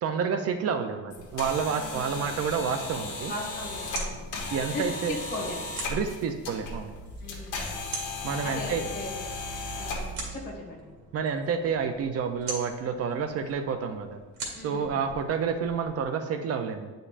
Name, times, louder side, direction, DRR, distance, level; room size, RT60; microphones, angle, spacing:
voice 1, 0.0-3.3 4.5-5.1 5.9-6.9 8.2-8.8 11.1-14.2 14.6-16.9, right 6 dB, 50° right, 7 dB, 0.5 m, -29 dB
sound 1, 1.1-10.3, left 3 dB, 70° left, 1.2 m, -36 dB
voice 2, 1.7-2.2 3.3-4.2 4.7-5.7 7.2-7.8 8.4-9.2 9.7-10.9 14.5-15.0, left 2 dB, 30° left, -4 dB, 1.8 m, -38 dB
sound 2, 3.3-16.0, right 3 dB, 85° right, 2.1 m, -44 dB
9.6 x 5.2 x 2.5 m, 1.3 s
cardioid pair, 175°, 32 cm